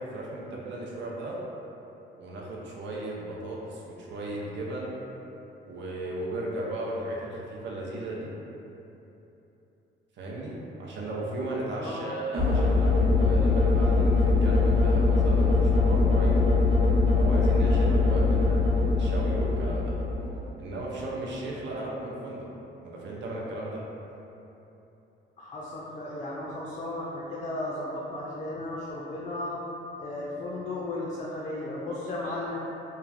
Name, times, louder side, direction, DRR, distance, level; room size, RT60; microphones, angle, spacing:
voice 1, 0.0-1.4 2.2-4.9 5.6-8.3 10.2-16.4 17.1-20.0 20.6-22.5 22.8-23.8, right 1 dB, 65° right, -4 dB, 0.6 m, -36 dB
voice 2, 11.7-12.1 25.4-29.6 30.0-32.6, left 2 dB, 35° left, -5 dB, 0.4 m, -35 dB
sound 1, 12.3-20.5, left 3 dB, 30° right, 0.8 m, -22 dB
3.0 x 2.3 x 2.5 m, 3.0 s
cardioid pair, 90°, 20 cm